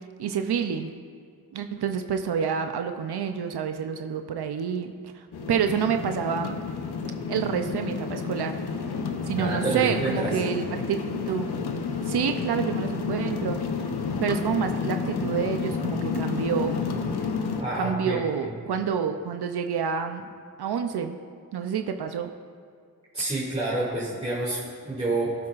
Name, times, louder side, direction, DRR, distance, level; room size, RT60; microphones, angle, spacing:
voice 1, 0.2-0.9 1.5-6.6 7.3-8.6 9.3-11.0 11.3-11.5 12.0-13.9 14.2-16.8 17.8-20.3 20.6-21.2 21.5-22.3, right 7 dB, 85° right, 6 dB, 0.6 m, -28 dB
sound 1, 5.3-17.6, left 5 dB, 85° left, 0.8 m, -30 dB
voice 2, 9.4-10.4 17.6-18.5 23.1-25.4, right 2 dB, 15° right, -8 dB, 2.3 m, -28 dB
18.5 x 7.5 x 2.5 m, 2.3 s
wide cardioid pair, 75°, 38 cm